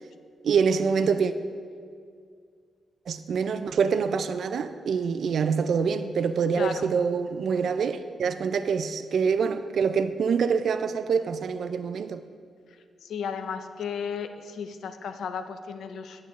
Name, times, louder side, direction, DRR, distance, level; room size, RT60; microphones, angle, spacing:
voice 1, 0.4-1.3 3.1-12.2, right 6 dB, 65° right, 11 dB, 0.3 m, -25 dB
voice 2, 6.6-6.9 13.0-16.3, left 6 dB, 80° left, 9 dB, 0.4 m, -34 dB
8.5 x 7.4 x 3.0 m, 2.2 s
cardioid pair, 90°, 0 cm